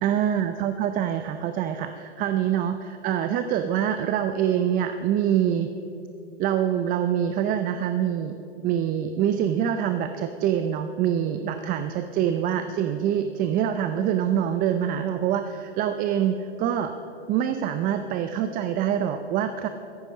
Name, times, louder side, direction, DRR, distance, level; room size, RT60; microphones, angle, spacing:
voice 1, 0.0-5.7 6.4-8.4 8.6-16.9 17.3-19.7, right 9 dB, 25° right, 9 dB, 0.5 m, -25 dB
14.0 x 10.5 x 6.1 m, 2.8 s
hypercardioid pair, 120°, 33 cm